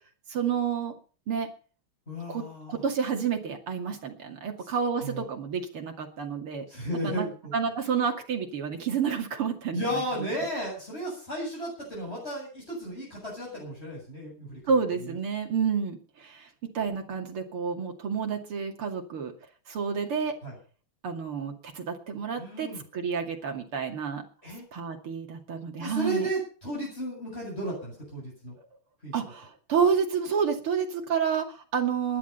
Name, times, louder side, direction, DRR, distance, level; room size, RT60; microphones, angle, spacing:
voice 1, 0.3-0.9 1.3-1.5 2.3-6.7 7.0-10.0 14.7-16.5 16.7-19.3 19.7-20.4 21.0-24.2 24.7-26.3 29.1-32.2, right 6 dB, 85° right, 3 dB, 3.3 m, -29 dB
voice 2, 2.1-2.8 4.6-4.7 5.0-5.3 6.7-7.5 9.7-15.2 20.4-20.5 22.4-22.8 24.4-24.6 25.8-28.6 29.0-29.1, right 1 dB, 30° left, -3 dB, 8.1 m, -34 dB
20.0 x 11.5 x 5.6 m, 0.39 s
omnidirectional pair, 2.3 m